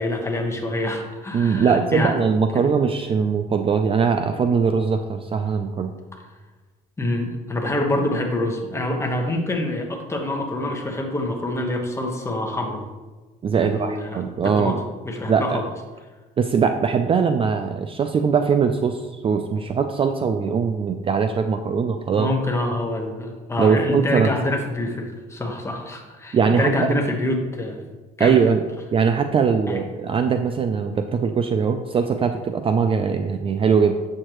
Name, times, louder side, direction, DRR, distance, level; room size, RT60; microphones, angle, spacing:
voice 1, 0.0-2.2 2.5-2.7 7.0-12.8 13.6-14.8 15.0-15.6 21.7-21.8 22.2-27.9 28.2-28.4 29.7-29.8, left 1 dB, 15° left, 2 dB, 1.2 m, -26 dB
voice 2, 1.3-5.9 13.4-14.8 15.3-15.6 16.4-22.3 23.6-24.3 26.3-26.9 28.2-28.6 28.9-34.0, right 6 dB, 30° right, 7 dB, 0.4 m, -21 dB
7.5 x 6.6 x 3.0 m, 1.3 s
cardioid pair, 110°, 17 cm